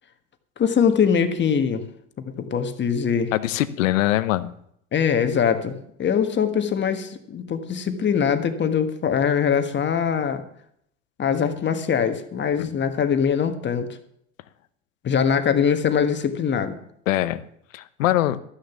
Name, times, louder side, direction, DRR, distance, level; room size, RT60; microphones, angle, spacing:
voice 1, 0.6-1.9 2.3-3.3 4.9-10.4 11.2-13.9 15.0-16.7, left 7 dB, 30° left, 8 dB, 1.5 m, -22 dB
voice 2, 3.3-4.5 12.6-12.7 17.1-17.4 17.7-18.4, left 14 dB, 80° left, 14 dB, 0.9 m, -22 dB
13.0 x 6.6 x 7.2 m, 0.70 s
hypercardioid pair, 100°, 38 cm